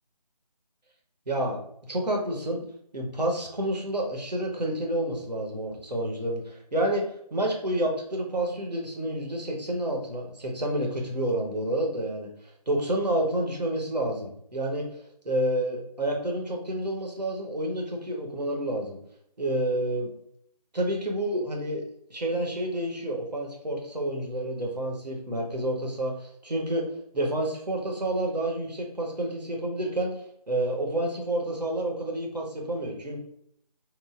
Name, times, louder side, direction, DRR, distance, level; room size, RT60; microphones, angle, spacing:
voice 1, 1.3-1.6 1.9-2.6 2.9-7.0 7.3-14.9 15.2-19.0 19.4-20.1 20.7-21.8 22.1-26.9 27.1-33.2, right 1 dB, 80° right, 1 dB, 0.9 m, -29 dB
3.1 x 2.2 x 2.3 m, 0.69 s
figure-of-eight pair, 160°, 21 cm